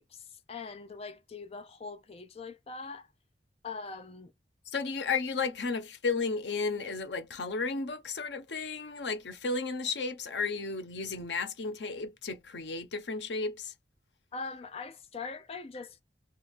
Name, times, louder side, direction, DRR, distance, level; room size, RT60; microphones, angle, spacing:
voice 1, 0.0-3.1 3.6-4.3 14.3-16.0, left 4 dB, 35° left, 0.4 m, -42 dB
voice 2, 4.7-13.7, left 4 dB, 80° left, 0.8 m, -33 dB
3.4 x 2.3 x 3.2 m
head